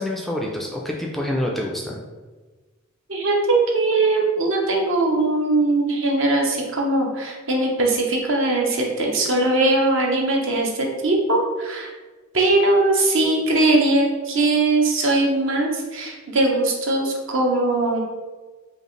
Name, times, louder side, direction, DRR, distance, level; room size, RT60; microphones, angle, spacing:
voice 1, 0.0-2.0, left 1 dB, ahead, -1 dB, 0.3 m, -27 dB
voice 2, 3.1-11.9 12.3-18.0, right 2 dB, 65° right, 0 dB, 0.8 m, -20 dB
5.1 x 2.4 x 3.1 m, 1.3 s
head